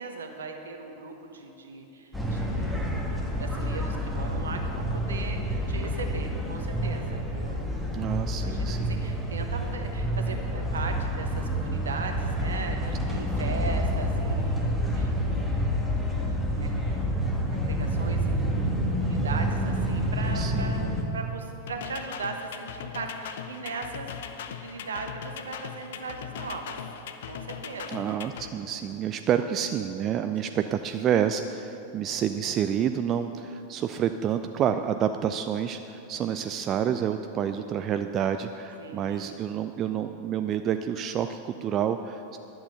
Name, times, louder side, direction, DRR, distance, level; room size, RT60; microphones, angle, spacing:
voice 1, 0.0-7.8 8.3-16.2 16.5-20.8 21.1-24.1 24.5-26.8 27.2-28.1 28.5-29.1 30.2-30.3 30.6-30.7 38.8-39.3, right 4 dB, 70° right, 4 dB, 1.1 m, -39 dB
sound 1, 2.1-21.0, equal, ahead, 1.6 m, -28 dB
voice 2, 7.9-9.0 13.1-13.4 20.3-20.8 27.9-42.4, right 9 dB, 30° right, 8 dB, 0.3 m, -29 dB
sound 2, 21.7-28.5, left 8 dB, 55° left, 0.6 m, -39 dB
11.0 x 7.8 x 6.8 m, 2.9 s
figure-of-eight pair, 90°, 0 cm